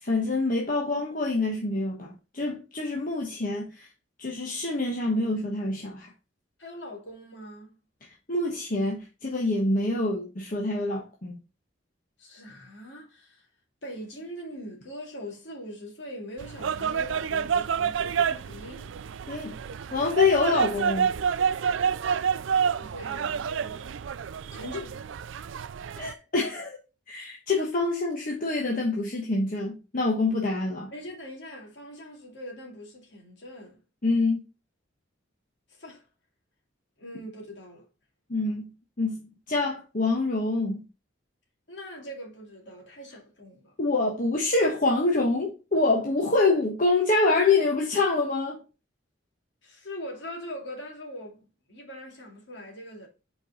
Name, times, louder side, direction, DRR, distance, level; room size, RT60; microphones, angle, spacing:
voice 1, 0.0-3.9 4.2-6.1 8.3-11.3 19.3-19.5 19.9-21.1 26.0-26.8 27.1-30.9 34.0-34.4 38.3-38.7 39.0-39.1 39.5-40.8 43.8-48.6, left 3 dB, 45° left, 1.2 m, -26 dB
voice 2, 6.6-7.7 12.2-13.5 13.8-18.9 22.8-24.1 24.5-25.0 30.9-33.8 35.7-36.0 37.0-37.9 41.7-43.7 49.6-51.4 51.7-53.1, equal, 65° left, 2.5 m, -42 dB
sound 1, 16.4-26.1, right 7 dB, 75° right, 0.4 m, -28 dB
5.4 x 4.7 x 4.8 m
head